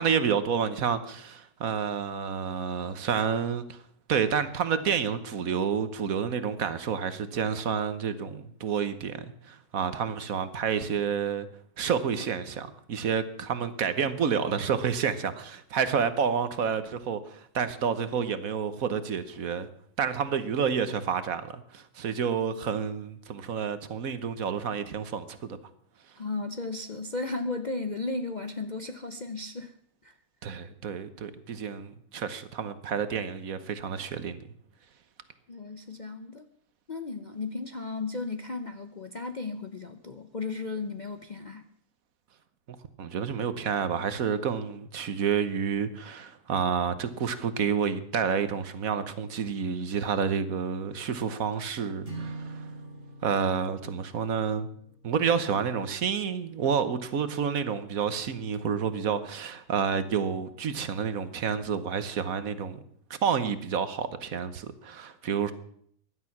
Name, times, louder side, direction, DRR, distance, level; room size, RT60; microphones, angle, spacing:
voice 1, 0.0-3.8 4.1-11.5 11.8-19.7 20.0-25.6 30.4-34.4 43.0-52.7 53.2-54.7 55.0-62.8 63.1-65.5, right 7 dB, 60° right, 1.4 m, -29 dB
voice 2, 26.2-29.7 30.0-30.1 35.5-36.5 36.9-41.6, left 3 dB, 40° left, 0.7 m, -35 dB
sound 1, 52.0-56.4, right 2 dB, 35° right, 3.9 m, -44 dB
16.0 x 11.5 x 5.9 m
omnidirectional pair, 1.7 m